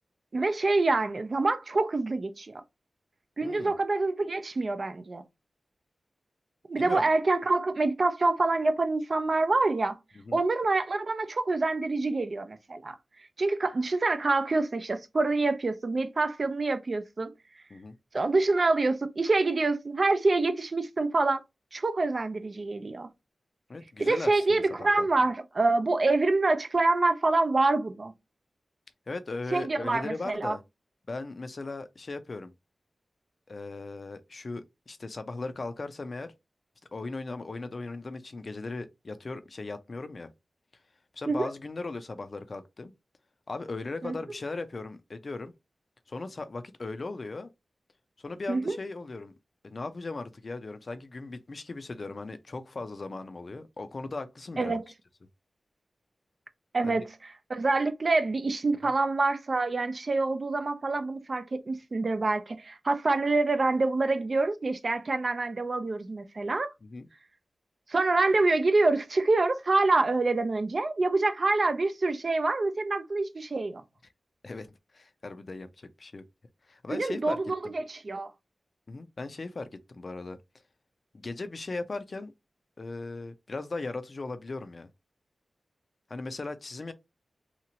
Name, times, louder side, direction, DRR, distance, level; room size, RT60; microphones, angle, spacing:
voice 1, 0.3-2.5 3.4-5.2 6.7-10.0 10.3-12.9 13.4-17.3 18.1-21.4 21.7-23.1 24.0-28.1 29.5-30.6 41.3-41.5 44.0-44.1 48.5-48.8 54.6-54.8 56.7-66.7 67.9-73.8 76.9-78.3, right 3 dB, 55° right, 0.5 m, -26 dB
voice 2, 3.4-3.7 6.8-7.1 10.2-10.4 17.7-17.9 23.7-24.6 25.0-25.3 29.1-30.6 31.1-32.5 33.5-36.3 36.9-40.3 41.1-42.9 43.5-45.5 46.1-47.5 48.2-49.3 49.6-54.8 56.8-57.0 66.8-67.1 74.4-76.2 76.7-77.4 78.9-80.4 81.1-82.3 82.8-84.9 86.1-86.9, left 3 dB, 55° left, 0.5 m, -38 dB
2.9 x 2.4 x 2.7 m
cardioid pair, 60°, 0 cm